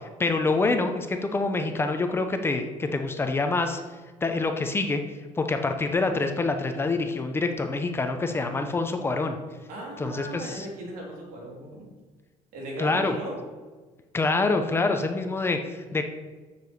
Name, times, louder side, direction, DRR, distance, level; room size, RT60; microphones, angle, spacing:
voice 1, 0.2-3.8 4.2-5.0 5.4-9.4 10.0-10.7 12.8-13.1 14.1-16.0, left 3 dB, 15° left, 6 dB, 0.6 m, -26 dB
voice 2, 9.7-11.9 12.5-13.4, right 1 dB, 85° right, -2 dB, 3.4 m, -37 dB
6.8 x 6.6 x 7.1 m, 1.4 s
cardioid pair, 170°, 14 cm